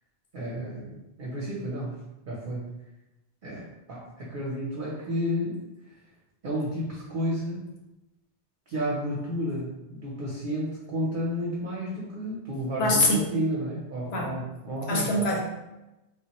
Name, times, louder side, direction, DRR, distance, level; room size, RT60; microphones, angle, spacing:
voice 1, 0.3-1.9 2.3-2.6 3.4-5.6 6.4-7.7 8.7-15.1, equal, 50° right, -5 dB, 0.7 m, -31 dB
voice 2, 12.8-13.3 14.1-14.3 14.9-15.4, left 1 dB, 70° left, -1 dB, 0.8 m, -24 dB
3.4 x 2.1 x 2.9 m, 0.98 s
omnidirectional pair, 1.2 m